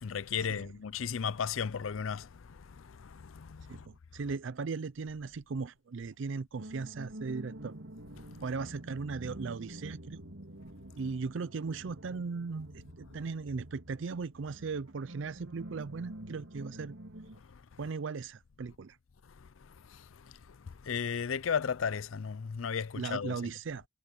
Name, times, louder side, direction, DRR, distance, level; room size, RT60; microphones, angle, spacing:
voice 1, 0.0-3.8 20.8-23.4, left 6 dB, 80° left, 0.5 m, -35 dB
voice 2, 3.7-7.8 8.4-10.2 11.0-16.9 17.8-19.0 22.9-23.9, right 4 dB, 65° right, 0.5 m, -38 dB
sound 1, 6.5-17.4, right 1 dB, 85° right, 3.8 m, -48 dB
head